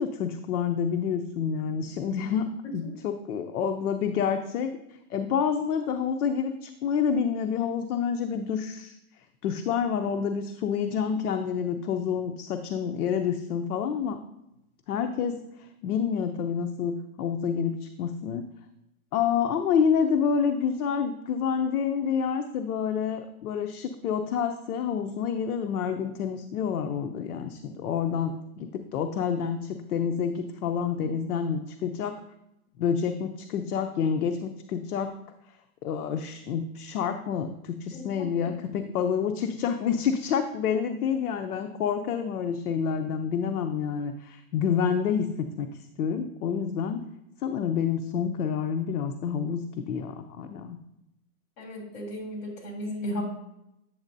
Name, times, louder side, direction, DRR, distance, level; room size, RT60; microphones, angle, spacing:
voice 1, 0.0-2.5 2.7-9.0 9.4-14.2 14.9-18.4 19.1-32.2 32.8-35.1 35.5-35.6 35.8-47.0 47.4-50.8, left 7 dB, 90° left, 7 dB, 0.7 m, -28 dB
voice 2, 37.9-38.5 51.6-53.2, equal, 60° left, -1 dB, 3.0 m, -35 dB
8.6 x 7.4 x 2.6 m, 0.86 s
supercardioid pair, 160°, 43 cm